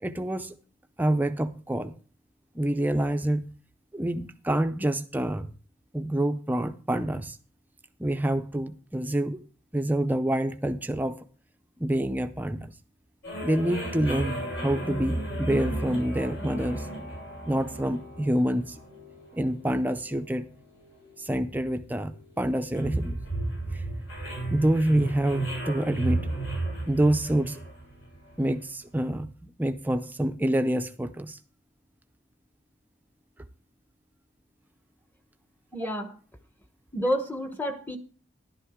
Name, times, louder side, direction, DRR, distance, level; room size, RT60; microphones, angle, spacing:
voice 1, 0.0-0.6 1.0-2.0 2.5-3.5 3.9-5.5 5.9-7.4 8.0-9.4 9.7-11.2 11.8-12.7 13.4-16.9 17.4-18.8 19.3-20.5 21.2-23.2 23.7-23.8 24.5-26.3 26.9-27.6 28.4-31.4, right 1 dB, 10° right, 0.5 m, -27 dB
sound 1, 13.2-28.6, right 1 dB, 75° left, 6.7 m, -34 dB
voice 2, 35.7-36.1 36.9-38.0, equal, 10° left, 1.0 m, -29 dB
11.5 x 9.8 x 3.6 m
head